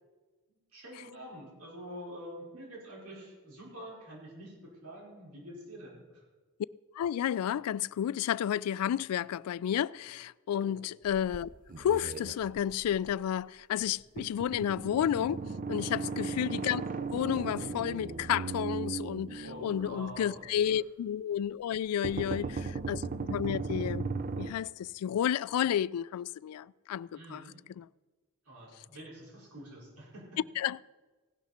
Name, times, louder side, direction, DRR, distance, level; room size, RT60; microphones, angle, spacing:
voice 1, 0.5-4.5 4.8-6.2 10.5-10.7 15.8-16.1 19.4-20.8 22.0-22.7 27.1-27.5 28.4-30.4, equal, 85° right, 5.0 m, -47 dB
voice 2, 7.0-11.5 11.8-16.8 17.1-24.1 24.4-27.4 27.8-27.9 30.6-30.8, left 9 dB, 80° left, 0.3 m, -31 dB
sound 1, 11.0-13.1 13.8-13.9 14.2-20.6 22.0-24.5, right 4 dB, 40° right, 0.6 m, -37 dB
16.5 x 11.5 x 4.3 m
head